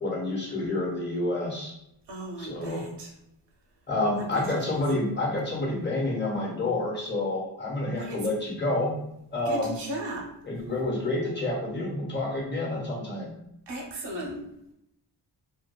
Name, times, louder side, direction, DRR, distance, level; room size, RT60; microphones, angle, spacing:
voice 1, 0.0-1.7 2.4-2.8 3.9-9.0 9.3-9.8 10.4-13.3, left 2 dB, 25° left, -4 dB, 1.1 m, -28 dB
voice 2, 2.1-3.1 4.3-4.8 8.0-8.2 9.5-10.3 13.7-14.4, right 1 dB, 75° right, 0 dB, 0.8 m, -36 dB
2.6 x 2.4 x 2.3 m, 0.79 s
cardioid pair, 65°, 43 cm